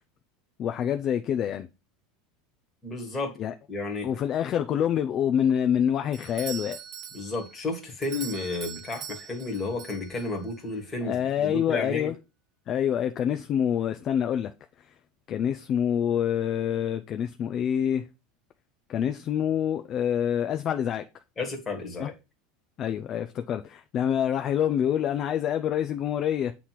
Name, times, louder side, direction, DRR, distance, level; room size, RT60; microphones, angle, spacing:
voice 1, 0.6-1.7 3.4-3.5 4.0-6.8 11.0-12.1 12.7-14.5 15.3-18.1 18.9-21.0 22.0-22.1 22.8-26.5, left 9 dB, 30° left, 0.4 m, -26 dB
voice 2, 2.8-3.3 3.7-4.1 7.1-12.1 21.4-22.1, left 3 dB, 10° left, 1.6 m, -32 dB
Doorbell, 6.1-10.6, right 8 dB, 30° right, 0.8 m, -42 dB
8.4 x 3.1 x 5.7 m
supercardioid pair, 170°, 0 cm